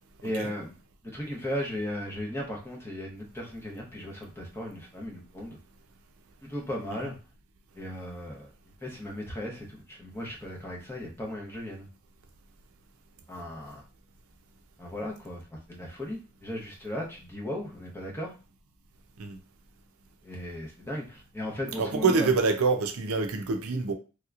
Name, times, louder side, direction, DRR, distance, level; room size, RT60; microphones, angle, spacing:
voice 1, 0.2-0.7 1.0-5.6 6.4-7.1 7.7-8.5 8.8-11.9 13.3-13.8 14.8-18.3 20.2-22.3, left 1 dB, 10° left, 0.8 m, -36 dB
voice 2, 21.8-23.9, right 4 dB, 70° right, 0.5 m, -26 dB
3.3 x 2.8 x 2.4 m
head